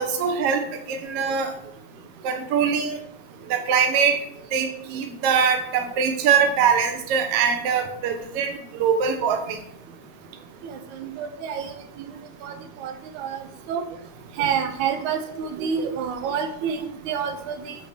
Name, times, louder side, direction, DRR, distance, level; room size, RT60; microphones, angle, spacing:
voice 1, 0.0-1.5 2.2-3.0 3.5-4.2 4.5-9.6, right 6 dB, 60° right, 5 dB, 1.9 m, -22 dB
voice 2, 10.6-11.7 12.0-12.1 12.4-12.5 12.8-13.8 14.4-17.8, right 7 dB, 85° right, 6 dB, 2.3 m, -28 dB
8.6 x 4.3 x 6.6 m, 0.70 s
omnidirectional pair, 3.3 m